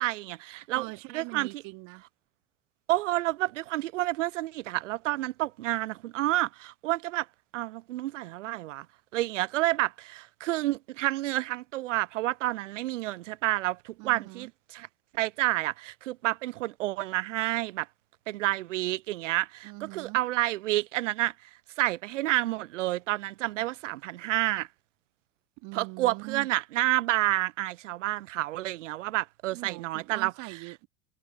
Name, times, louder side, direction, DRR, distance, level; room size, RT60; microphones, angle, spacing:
voice 1, 0.0-0.9 1.1-1.6 2.9-7.3 7.5-8.9 9.1-14.9 15.1-17.9 18.3-21.5 21.8-24.7 25.7-30.3, right 16 dB, 65° right, 0.5 m, -29 dB
voice 2, 0.7-2.0 14.0-14.5 19.6-20.2 25.6-26.5 29.5-30.9, right 28 dB, 45° right, 2.5 m, -42 dB
figure-of-eight pair, 75°, 41 cm